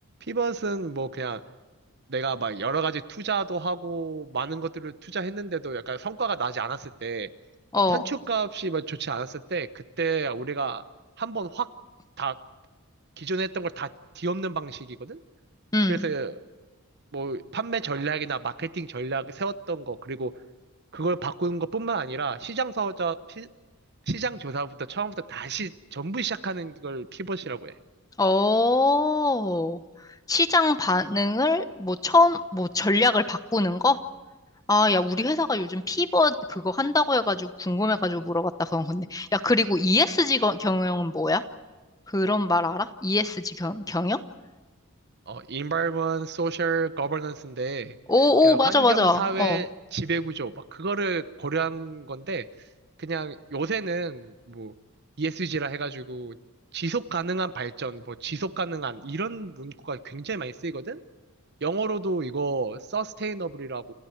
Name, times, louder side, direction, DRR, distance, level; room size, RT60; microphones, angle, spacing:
voice 1, 0.2-1.4 2.1-7.3 7.9-10.8 11.2-11.7 12.2-12.4 13.2-15.2 15.9-16.4 17.1-20.3 20.9-23.5 24.1-27.7 45.3-47.9 48.4-52.5 53.0-54.7 55.2-56.4 56.7-61.0 61.6-63.9, right 4 dB, 50° right, 12 dB, 1.0 m, -30 dB
voice 2, 7.7-8.1 15.7-16.0 28.2-29.8 30.3-34.0 34.7-41.4 42.1-44.2 48.1-49.6, left 2 dB, 15° left, 10 dB, 1.0 m, -23 dB
29.5 x 27.5 x 4.6 m, 1.3 s
head